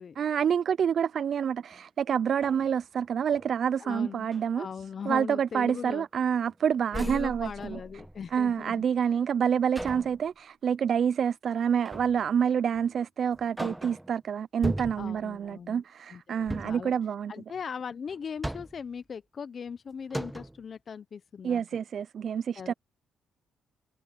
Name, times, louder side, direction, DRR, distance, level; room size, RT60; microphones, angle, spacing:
voice 1, 0.2-4.7 5.1-7.8 8.3-17.3 21.4-22.7, right 8 dB, 55° right, 0.3 m, -27 dB
sound 1, 1.7-1.8 2.3-3.5 4.0-4.5 5.0-5.2 5.6-6.5 6.9-8.4 9.7-10.2 11.8-12.3 12.7-12.9 13.3-14.1 14.6-15.2 16.4-16.9 18.1-18.9 19.7-19.8 20.1-20.6, right 1 dB, 5° right, 1.2 m, -38 dB
voice 2, 3.8-4.2 4.5-6.1 6.9-8.8 15.0-15.8 16.1-16.9 17.3-21.6 22.6-22.7, left 6 dB, 45° left, 0.7 m, -39 dB
cardioid pair, 90°, 0 cm